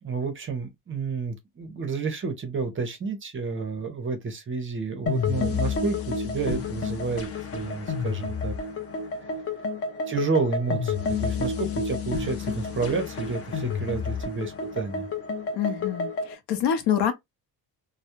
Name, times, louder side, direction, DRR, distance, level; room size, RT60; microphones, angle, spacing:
voice 1, 0.0-8.5 10.1-15.1, right 4 dB, 30° right, 0.5 m, -30 dB
sound 1, 5.1-16.3, left 4 dB, 35° left, 0.4 m, -30 dB
voice 2, 15.5-17.1, left 9 dB, 65° left, 0.7 m, -26 dB
2.2 x 2.0 x 2.8 m
cardioid pair, 120°, 44 cm